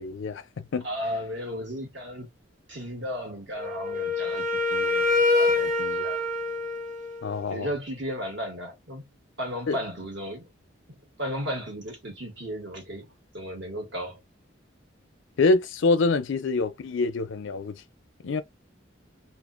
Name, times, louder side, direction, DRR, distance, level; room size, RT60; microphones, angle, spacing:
voice 1, 0.0-0.9 7.2-7.7 9.7-9.8 15.4-17.8 18.2-18.4, left 3 dB, 80° left, 0.4 m, -25 dB
voice 2, 0.8-2.3 2.7-6.2 7.5-9.0 9.4-10.5 11.2-13.1 13.3-14.2, equal, 65° right, 1.3 m, -34 dB
Wind instrument woodwind instrument, 3.6-7.5, left 3 dB, 40° right, 0.6 m, -26 dB
2.5 x 2.1 x 2.4 m
head